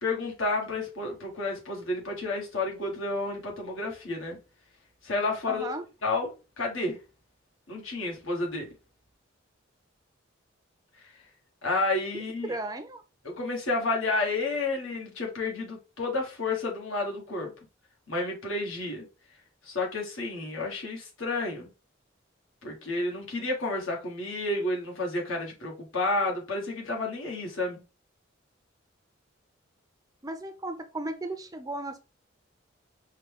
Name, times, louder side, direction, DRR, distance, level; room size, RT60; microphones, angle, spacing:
voice 1, 0.0-4.4 5.0-5.7 6.0-6.3 6.6-7.0 7.7-8.7 11.6-12.5 13.2-17.5 18.1-19.0 19.6-21.7 22.6-27.8, left 2 dB, 80° left, 1.6 m, -30 dB
voice 2, 5.5-5.8 12.4-13.0 30.2-32.0, right 2 dB, 20° right, 0.4 m, -35 dB
5.5 x 2.2 x 3.5 m
head